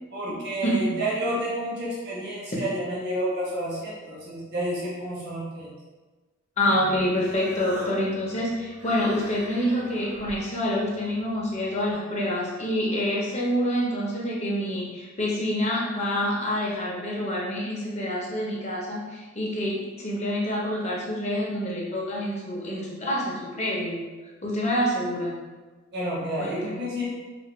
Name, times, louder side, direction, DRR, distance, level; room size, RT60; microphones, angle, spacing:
voice 1, 0.1-5.7 25.9-27.1, right 1 dB, 50° right, -6 dB, 0.7 m, -30 dB
voice 2, 6.6-24.0 24.4-25.3 26.4-26.8, equal, 30° left, -4 dB, 0.6 m, -27 dB
Human voice, 6.7-11.9, equal, 75° right, 1.4 m, -44 dB
3.2 x 2.2 x 3.0 m, 1.3 s
head